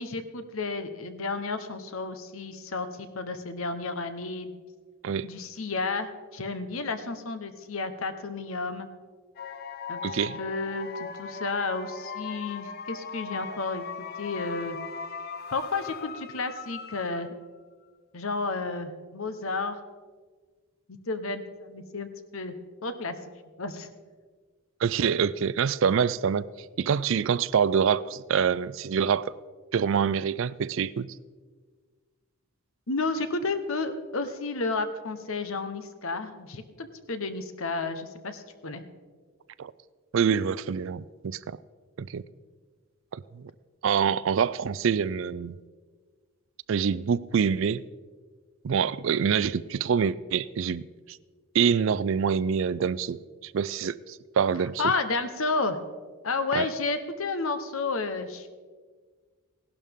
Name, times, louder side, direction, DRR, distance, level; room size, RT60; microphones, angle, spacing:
voice 1, 0.0-4.5 5.2-8.9 9.9-13.8 14.2-14.8 15.5-17.3 18.1-19.8 20.9-22.5 22.8-23.1 23.6-23.9 32.9-38.8 54.8-55.8 56.2-58.5, left 3 dB, 70° left, 10 dB, 1.0 m, -32 dB
sound 1, 9.4-17.5, left 5 dB, 45° left, 0.7 m, -38 dB
voice 2, 10.0-10.4 24.8-26.5 26.8-29.3 29.7-31.1 39.6-39.7 40.1-41.6 42.0-42.2 43.1-43.5 43.8-45.5 46.7-47.8 48.6-51.2 51.5-54.8 56.5-56.7, right 7 dB, 60° right, 18 dB, 0.4 m, -26 dB
17.0 x 12.0 x 3.6 m, 1.5 s
head